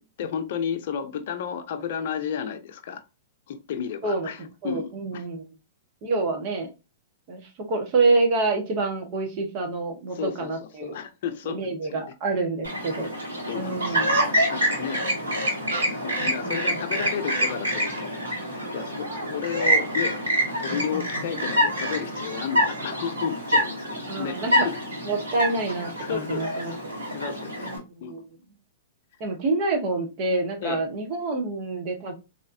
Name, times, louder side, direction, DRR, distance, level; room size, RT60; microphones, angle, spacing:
voice 1, 0.2-3.0 3.5-5.2 10.1-10.5 10.8-12.1 13.5-14.1 14.5-15.3 15.9-18.1 18.5-20.2 20.6-24.4 24.6-24.8 26.0-26.8 27.1-27.7 28.0-28.2 30.6-30.8, left 8 dB, 60° left, 0.6 m, -32 dB
voice 2, 4.0-5.4 6.0-6.7 7.3-11.0 11.5-13.1 13.5-14.2 16.4-16.5 24.1-24.7 25.0-26.7 27.6-28.3 29.2-32.1, right 3 dB, 45° right, 1.3 m, -27 dB
Chirp tweet, 12.6-27.8, equal, 80° right, 1.6 m, -26 dB
4.0 x 3.0 x 2.7 m
hypercardioid pair, 110°, 0 cm